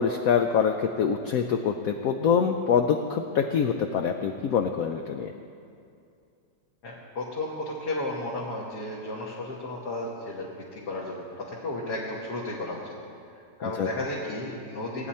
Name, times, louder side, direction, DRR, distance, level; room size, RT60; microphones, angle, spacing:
voice 1, 0.0-5.3 13.8-13.9, left 7 dB, 75° left, 5 dB, 0.8 m, -25 dB
voice 2, 6.8-12.9 13.6-15.1, left 2 dB, 60° left, -4 dB, 1.9 m, -33 dB
18.5 x 8.9 x 4.2 m, 2.5 s
omnidirectional pair, 2.0 m